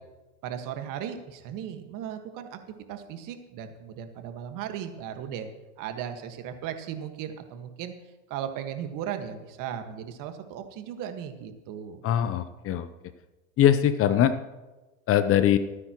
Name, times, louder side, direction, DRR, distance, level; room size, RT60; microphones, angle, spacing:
voice 1, 0.4-2.6 2.9-5.5 5.8-7.9 8.3-12.0, right 9 dB, 50° right, 7 dB, 1.7 m, -36 dB
voice 2, 12.0-12.9 13.6-14.3 15.1-15.6, left 10 dB, 30° left, 12 dB, 0.7 m, -21 dB
23.5 x 9.7 x 3.0 m, 1.1 s
hypercardioid pair, 110°, 42 cm